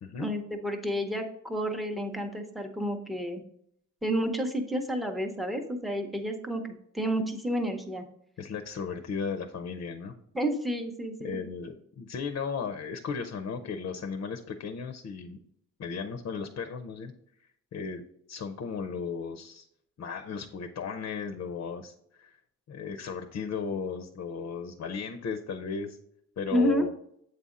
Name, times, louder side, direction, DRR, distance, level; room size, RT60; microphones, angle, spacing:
voice 1, 0.2-3.4 4.0-8.0 10.3-11.4 26.5-26.9, equal, ahead, 3 dB, 0.7 m, -30 dB
voice 2, 8.4-10.1 11.2-15.4 15.8-17.1 17.7-18.0 18.3-19.6 20.0-22.4 22.7-26.0 26.4-26.9, left 5 dB, 50° left, 7 dB, 0.6 m, -35 dB
7.9 x 4.1 x 3.7 m, 0.72 s
cardioid pair, 130°, 32 cm